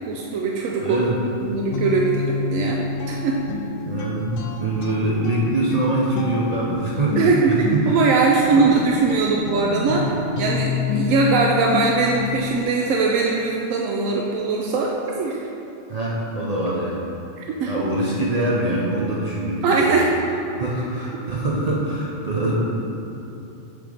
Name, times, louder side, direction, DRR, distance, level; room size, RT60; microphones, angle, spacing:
voice 1, 0.1-1.0 1.4-2.8 3.1-3.4 7.2-15.4 17.4-17.7 19.6-20.1, right 4 dB, 85° right, -1 dB, 1.0 m, -21 dB
voice 2, 0.8-1.2 3.8-7.9 8.6-8.7 15.9-17.1 17.7-20.0 20.6-22.6, right 1 dB, 40° right, -5 dB, 0.6 m, -24 dB
Guitar, 1.4-12.6, left 6 dB, 80° left, 0.9 m, -29 dB
6.7 x 3.5 x 5.0 m, 3.0 s
omnidirectional pair, 1.3 m